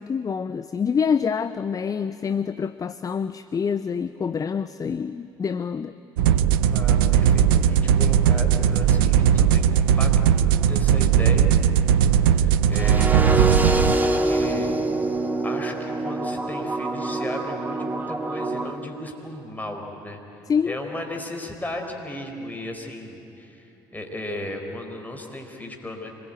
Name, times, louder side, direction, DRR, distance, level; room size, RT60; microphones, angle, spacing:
voice 1, 0.0-5.9 20.5-20.8, left 6 dB, 30° left, 13 dB, 0.6 m, -26 dB
sound 1, 6.2-14.0, right 9 dB, 70° right, 0.7 m, -18 dB
voice 2, 6.7-10.1 10.4-11.8 12.1-14.7 15.4-20.2 20.7-26.1, left 1 dB, 15° left, 3 dB, 4.5 m, -35 dB
sound 2, 12.7-18.7, right 2 dB, 15° right, 1.9 m, -25 dB
25.5 x 21.0 x 9.1 m, 2.9 s
figure-of-eight pair, 55°, 12 cm